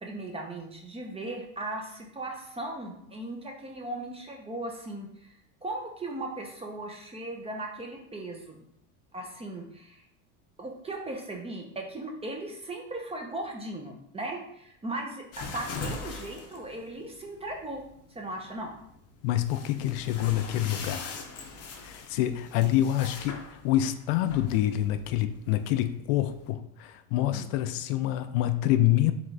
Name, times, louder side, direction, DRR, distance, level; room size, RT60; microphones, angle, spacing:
voice 1, 0.0-5.3 5.6-8.6 9.1-10.0 10.6-17.8 18.1-18.7 23.0-23.1 27.3-27.5, right 2 dB, 15° right, 1 dB, 0.7 m, -37 dB
sound 1, 15.3-26.5, left 4 dB, 35° left, 0.8 m, -42 dB
voice 2, 19.2-21.2 21.8-29.1, left 13 dB, 80° left, 10 dB, 0.5 m, -27 dB
3.8 x 3.5 x 3.3 m, 0.72 s
supercardioid pair, 120°, 40 cm